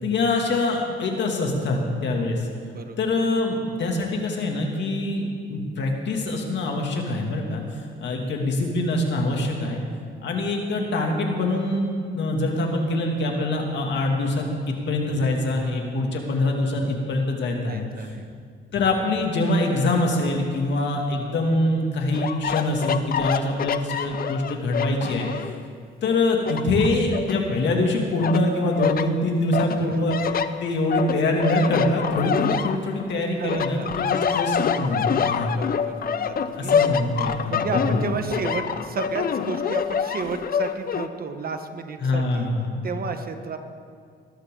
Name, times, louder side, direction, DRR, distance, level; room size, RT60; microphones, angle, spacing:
voice 1, 0.0-2.5 3.0-9.8 10.2-18.1 18.7-25.3 26.0-30.2 30.6-35.7 36.6-37.6 42.0-42.9, left 2 dB, 65° left, 1 dB, 2.6 m, -24 dB
voice 2, 17.7-18.3 29.8-30.1 33.4-34.1 35.5-36.7 37.5-42.5 42.8-43.6, right 5 dB, 50° right, 7 dB, 1.3 m, -32 dB
sound 1, 22.1-25.6 26.0-27.8 28.2-29.1 29.5-33.2 33.5-41.1, left 7 dB, 50° left, 0.7 m, -26 dB
20.0 x 12.5 x 3.9 m, 2.2 s
cardioid pair, 90°, 20 cm